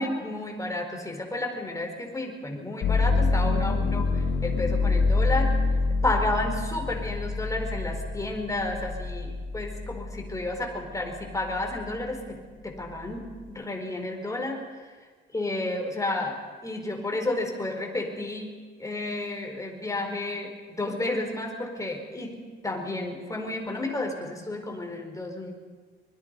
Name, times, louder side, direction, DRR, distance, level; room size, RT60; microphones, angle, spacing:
voice 1, 0.0-5.5 6.0-14.6 15.3-18.5 18.8-25.5, left 2 dB, 15° left, 3 dB, 4.7 m, -31 dB
sound 1, 2.8-10.6 11.1-11.9, left 3 dB, 80° left, 2.5 m, -26 dB
25.0 x 21.0 x 5.5 m, 1.5 s
cardioid pair, 90°, 20 cm